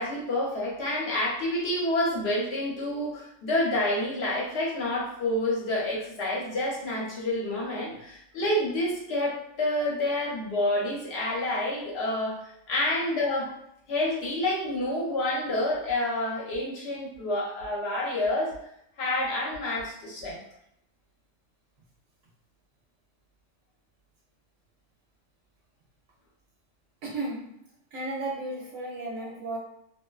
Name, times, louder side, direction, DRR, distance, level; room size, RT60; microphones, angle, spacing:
voice 1, 0.0-12.4 12.7-13.5 13.9-18.6 19.0-20.4, left 1 dB, 55° left, -4 dB, 1.0 m, -28 dB
voice 2, 27.0-27.5 27.9-29.6, right 2 dB, 90° right, -3 dB, 1.0 m, -34 dB
2.6 x 2.1 x 2.3 m, 0.75 s
omnidirectional pair, 1.4 m